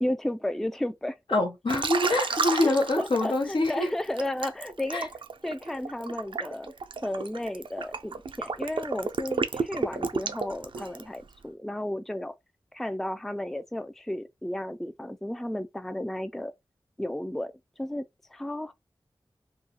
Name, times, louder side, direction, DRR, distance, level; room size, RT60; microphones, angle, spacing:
voice 1, 0.0-1.2 2.6-5.1 5.4-6.7 7.0-12.3 12.7-16.5 17.0-17.5 17.8-18.1 18.3-18.7, left 1 dB, 5° left, 0.3 m, -33 dB
voice 2, 1.3-3.9 4.9-5.0, left 2 dB, 75° left, 0.9 m, -25 dB
Liquid, 1.7-3.7 4.2-11.2, right 4 dB, 75° right, 0.4 m, -31 dB
2.8 x 2.3 x 2.7 m
wide cardioid pair, 50°, 9 cm